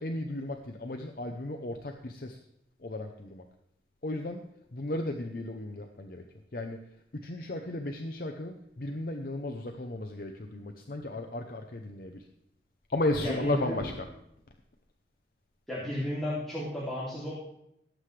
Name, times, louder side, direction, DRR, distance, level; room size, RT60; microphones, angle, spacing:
voice 1, 0.0-2.4 2.8-3.4 4.0-4.4 4.7-6.2 6.5-6.8 7.1-12.2 12.9-14.0, left 2 dB, 55° left, 4 dB, 0.7 m, -34 dB
voice 2, 13.2-13.9 15.7-17.3, equal, ahead, -10 dB, 2.7 m, -33 dB
17.5 x 7.7 x 3.3 m, 0.77 s
head